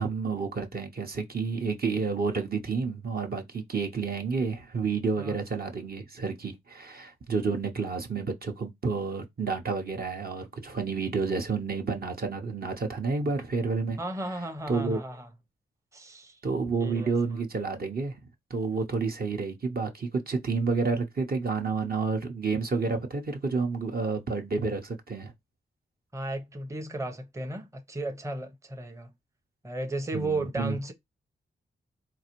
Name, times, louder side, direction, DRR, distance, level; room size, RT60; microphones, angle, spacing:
voice 1, 0.0-14.0 14.7-15.0 16.4-18.2 18.5-25.3 30.1-30.8, right 4 dB, 45° right, 0.8 m, -30 dB
voice 2, 14.0-15.3 15.9-16.4 16.8-17.4 26.1-29.1 29.6-30.9, right 2 dB, 15° right, 0.7 m, -34 dB
3.9 x 2.5 x 2.9 m
cardioid pair, 50°, 21 cm